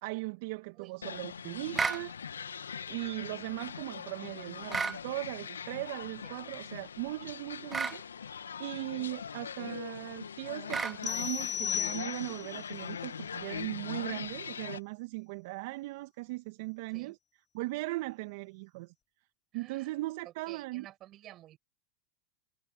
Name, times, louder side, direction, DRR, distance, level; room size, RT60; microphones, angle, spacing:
voice 1, 0.0-2.2 2.9-17.2 17.5-18.9 19.5-20.9, right 21 dB, 60° right, 1.4 m, -38 dB
sound 1, 1.0-14.8, left 7 dB, 90° left, 1.9 m, -42 dB
sound 2, 1.8-2.0 4.7-5.0 7.7-8.0 10.7-11.0, right 4 dB, 15° right, 0.7 m, -31 dB
sound 3, 11.0-12.6, left 8 dB, 30° left, 0.9 m, -35 dB
voice 2, 19.5-19.9 20.2-21.6, right 14 dB, 40° right, 7.3 m, -52 dB
hypercardioid pair, 95°, 0 cm